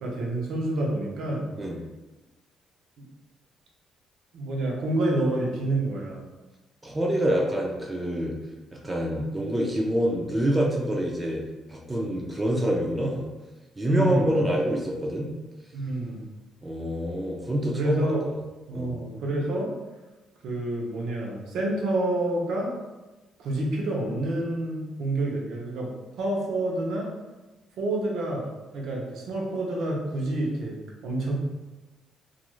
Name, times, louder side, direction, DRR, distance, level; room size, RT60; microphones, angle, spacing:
voice 1, 0.0-1.5 4.3-6.2 13.9-14.4 15.7-16.2 17.7-18.3 18.7-19.7 20.4-22.8 23.4-25.9 26.2-27.1 27.8-28.5 28.7-31.4, right 1 dB, 70° right, -1 dB, 0.6 m, -28 dB
voice 2, 6.8-8.3 8.8-11.4 11.7-13.3 13.8-15.3 16.6-18.1 18.7-18.9, equal, 10° right, -2 dB, 0.3 m, -26 dB
2.4 x 2.3 x 3.0 m, 1.1 s
cardioid pair, 150°, 0 cm